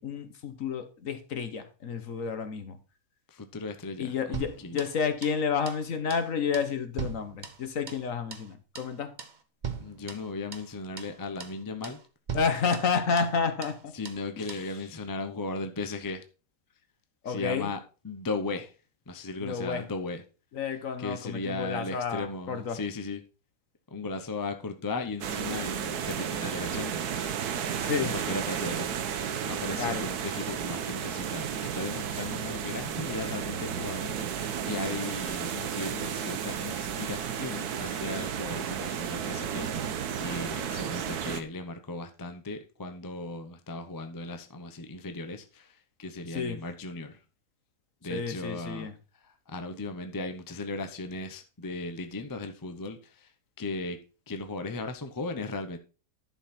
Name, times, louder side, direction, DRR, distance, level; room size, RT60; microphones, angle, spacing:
voice 1, 0.0-2.8 4.0-9.1 12.3-13.9 14.4-14.6 17.2-17.7 19.4-19.8 20.5-22.8 27.8-28.1 29.8-30.0 46.3-46.6 48.1-48.9, left 6 dB, 55° left, 1.4 m, -30 dB
voice 2, 3.3-4.8 9.8-12.0 13.9-16.2 17.3-18.7 19.1-20.2 21.0-23.2 23.9-27.2 28.0-28.9 29.4-47.2 48.0-48.9 49.2-53.3 53.6-54.0 54.3-55.8, left 3 dB, 20° left, 0.5 m, -37 dB
sound 1, 4.3-5.4 5.7-5.8 6.1-6.3 6.5-8.1 8.3-8.5 8.7-8.9 9.2-9.4 9.6-10.7 11.0-11.1 11.4-11.6 11.8-12.0 12.3-13.4 13.6-13.8 14.0-14.2 14.5-14.7, right 6 dB, 35° right, 0.9 m, -40 dB
sound 2, 25.2-41.4, right 8 dB, 75° right, 1.4 m, -33 dB
11.0 x 5.8 x 4.3 m
omnidirectional pair, 1.7 m